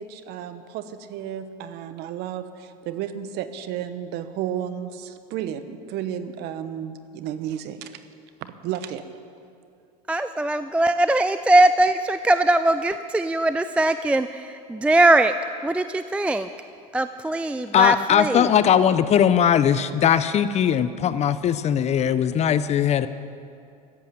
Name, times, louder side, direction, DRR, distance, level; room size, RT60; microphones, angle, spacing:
voice 1, 0.0-7.9 8.4-9.0, right 10 dB, 55° right, 11 dB, 1.1 m, -32 dB
voice 2, 10.1-15.3 15.6-16.5 16.9-18.5, right 2 dB, 5° right, 11 dB, 0.3 m, -21 dB
voice 3, 17.7-23.1, left 9 dB, 35° left, 14 dB, 0.6 m, -19 dB
14.5 x 8.3 x 9.0 m, 2.5 s
hypercardioid pair, 100°, 20 cm